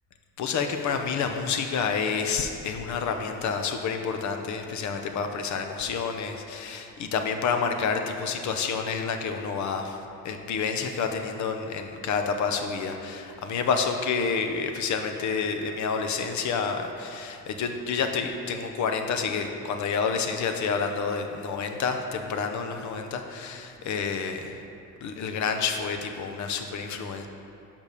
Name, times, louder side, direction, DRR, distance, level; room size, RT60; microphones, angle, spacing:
voice 1, 0.4-10.0 10.2-24.6 25.0-27.3, left 5 dB, 70° left, 5 dB, 0.8 m, -29 dB
5.3 x 5.2 x 6.5 m, 2.7 s
cardioid pair, 90°, 30 cm